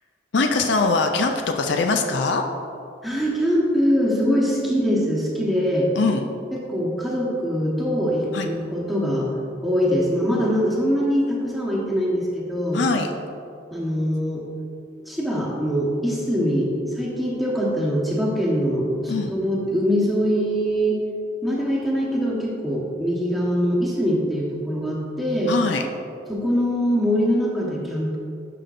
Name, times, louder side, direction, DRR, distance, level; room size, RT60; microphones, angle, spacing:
voice 1, 0.3-2.4 6.0-6.2 8.3-8.5 12.7-13.1 19.1-19.3 25.5-25.9, left 3 dB, 65° left, 4 dB, 0.5 m, -22 dB
voice 2, 3.0-5.9 6.5-9.3 9.6-12.8 13.7-14.5 15.1-21.0 21.4-25.5 26.3-28.2, equal, ahead, -5 dB, 1.2 m, -23 dB
11.5 x 5.8 x 2.6 m, 2.5 s
head